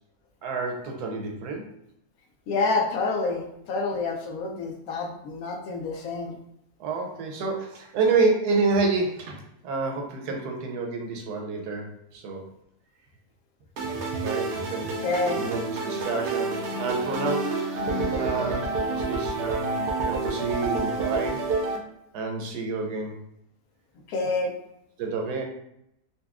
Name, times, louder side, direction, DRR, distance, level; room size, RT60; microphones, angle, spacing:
voice 1, 0.4-1.6 6.8-12.4 13.9-17.7 18.2-21.4 22.1-23.2 25.0-25.4, right 4 dB, 80° right, 2 dB, 1.2 m, -29 dB
voice 2, 2.5-6.4 15.0-15.4 24.1-24.5, left 3 dB, 70° left, 1 dB, 1.0 m, -28 dB
sound 1, 13.8-21.8, right 3 dB, 65° right, 0.7 m, -29 dB
4.0 x 2.3 x 2.3 m, 0.77 s
omnidirectional pair, 1.7 m